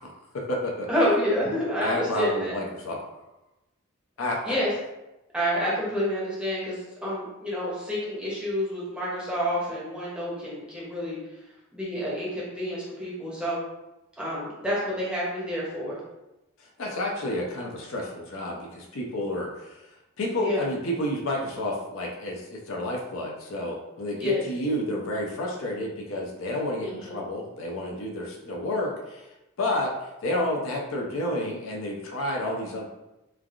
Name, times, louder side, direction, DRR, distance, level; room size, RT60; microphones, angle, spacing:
voice 1, 0.0-0.9 1.8-3.0 4.2-4.5 16.6-19.8 20.2-29.3 29.6-32.8, left 1 dB, 70° left, -1 dB, 0.5 m, -30 dB
voice 2, 0.9-2.6 4.4-4.7 5.3-11.2 11.7-13.6 14.2-16.0 20.4-20.7 24.2-24.4 26.8-27.2, equal, 5° right, -7 dB, 0.6 m, -28 dB
3.2 x 2.4 x 2.4 m, 0.97 s
head